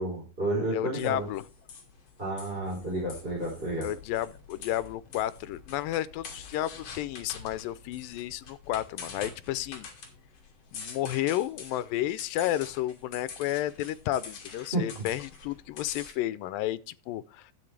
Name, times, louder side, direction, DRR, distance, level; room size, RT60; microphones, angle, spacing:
voice 1, 0.0-1.3 2.2-3.9 14.7-14.9, right 1 dB, 15° right, 4.1 m, -31 dB
voice 2, 0.7-1.5 3.8-9.9 10.7-17.5, left 13 dB, 85° left, 2.4 m, -32 dB
sound 1, 1.0-16.1, left 5 dB, 50° left, 3.0 m, -46 dB
12.5 x 8.4 x 3.3 m
omnidirectional pair, 3.9 m